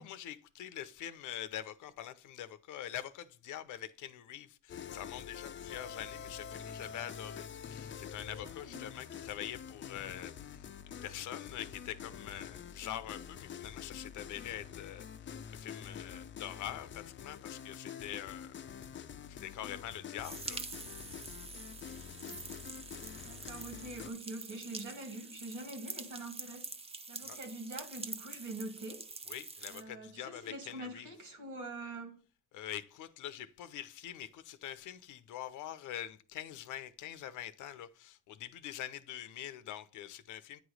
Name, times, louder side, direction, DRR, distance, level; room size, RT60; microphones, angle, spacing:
voice 1, 0.0-18.6 18.9-19.0 19.3-20.6 27.2-27.4 29.3-31.1 32.5-40.6, left 11 dB, 80° left, 0.7 m, -44 dB
sound 1, 4.7-24.1, left 8 dB, 40° left, 0.5 m, -46 dB
voice 2, 8.4-8.9 22.2-22.4 23.2-26.7 27.1-29.1 29.7-32.2, right 2 dB, 80° right, 2.4 m, -44 dB
sound 2, 20.2-29.8, right 3 dB, 20° right, 0.6 m, -46 dB
9.0 x 3.1 x 6.3 m
cardioid pair, 90°, 30 cm